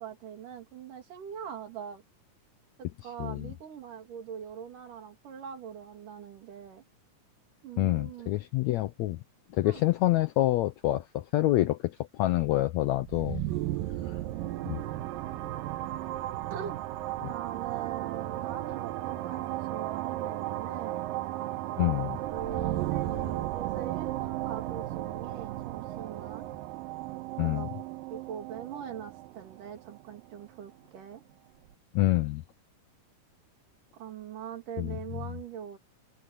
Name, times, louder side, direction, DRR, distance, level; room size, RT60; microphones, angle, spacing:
voice 1, 0.0-2.0 2.8-6.8 7.6-8.3 9.6-9.8 14.4-15.6 16.5-16.8 17.2-21.1 22.3-26.5 27.4-27.7 28.1-31.2 33.9-35.8, right 8 dB, 70° right, 4.1 m, -42 dB
voice 2, 3.2-3.5 7.8-9.2 9.5-13.4 14.0-14.2 14.7-14.8 21.8-22.2 27.4-27.7 31.9-32.4 34.8-35.0, left 16 dB, 85° left, 1.6 m, -27 dB
sound 1, 13.0-30.7, right 15 dB, 85° right, 2.5 m, -35 dB
omnidirectional pair, 4.0 m